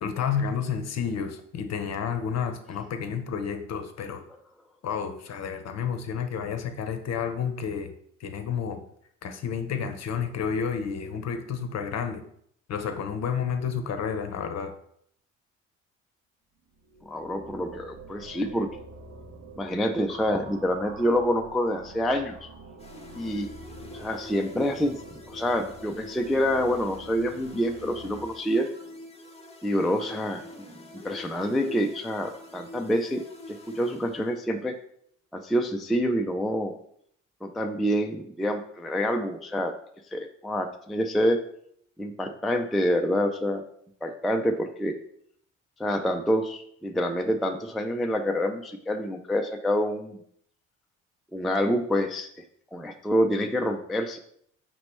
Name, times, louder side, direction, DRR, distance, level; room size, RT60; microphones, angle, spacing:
voice 1, 0.0-4.2 4.8-7.9 8.2-8.8 9.2-12.2 12.7-14.7, left 7 dB, 45° left, 8 dB, 0.7 m, -30 dB
sound 1, 16.7-28.3, right 3 dB, 40° right, 0.7 m, -46 dB
voice 2, 17.0-18.7 19.6-22.5 23.1-23.5 23.9-25.0 25.3-28.7 29.6-30.4 31.0-33.2 33.5-34.7 35.3-36.7 37.4-39.7 40.1-41.4 42.0-43.6 44.0-44.9 45.8-50.2 51.3-52.3 52.7-54.2, equal, ahead, 4 dB, 0.3 m, -27 dB
sound 2, 22.8-34.7, left 1 dB, 15° left, 0.8 m, -45 dB
5.3 x 2.9 x 3.3 m, 0.67 s
hypercardioid pair, 55°, 37 cm